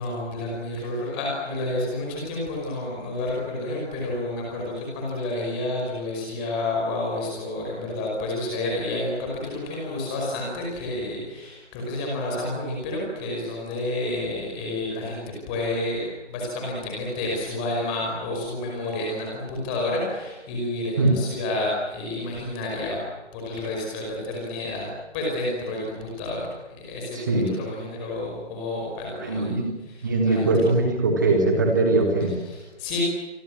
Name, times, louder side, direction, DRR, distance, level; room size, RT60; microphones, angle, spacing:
voice 1, 0.0-23.0 23.3-24.9 25.1-27.2 27.5-30.5 32.4-33.0, left 2 dB, 10° left, -2 dB, 5.3 m, -30 dB
voice 2, 29.2-32.4, right 2 dB, 15° right, 3 dB, 3.4 m, -21 dB
28.5 x 24.5 x 7.6 m, 1.1 s
figure-of-eight pair, 160°, 35 cm